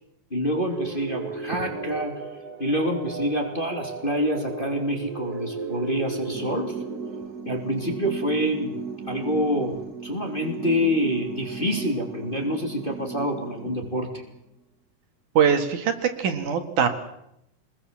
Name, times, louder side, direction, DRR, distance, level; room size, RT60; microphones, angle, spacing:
voice 1, 0.3-2.2 2.6-6.7 7.4-8.7 9.1-14.1, equal, 15° left, 2 dB, 3.0 m, -27 dB
sound 1, 0.7-14.4, right 4 dB, 40° right, 1.5 m, -35 dB
voice 2, 15.3-16.9, right 7 dB, 65° right, 7 dB, 3.3 m, -22 dB
26.0 x 20.5 x 7.7 m, 0.80 s
omnidirectional pair, 3.8 m